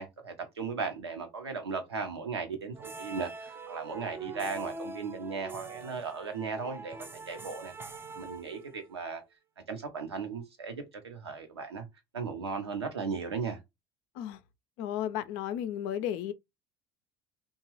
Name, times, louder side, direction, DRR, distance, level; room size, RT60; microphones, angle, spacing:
voice 1, 0.0-7.7 8.1-9.2 9.7-11.8 12.1-13.6, right 5 dB, 85° right, 0.7 m, -36 dB
sound 1, 2.7-9.0, right 3 dB, 15° right, 0.5 m, -44 dB
voice 2, 14.8-16.3, left 10 dB, 60° left, 0.4 m, -33 dB
2.9 x 2.2 x 3.0 m
figure-of-eight pair, 60°, 13 cm